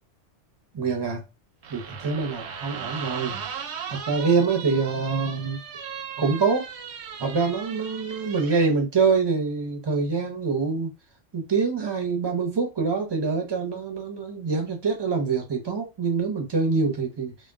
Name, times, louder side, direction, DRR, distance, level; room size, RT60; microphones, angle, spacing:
voice 1, 0.7-1.2 1.7-3.6 3.9-5.6 6.2-6.6 7.2-10.9 11.3-17.5, right 4 dB, 25° right, 0.6 m, -25 dB
sound 1, 1.6-8.7, right 7 dB, 70° right, 0.8 m, -37 dB
2.3 x 2.2 x 3.5 m
omnidirectional pair, 1.3 m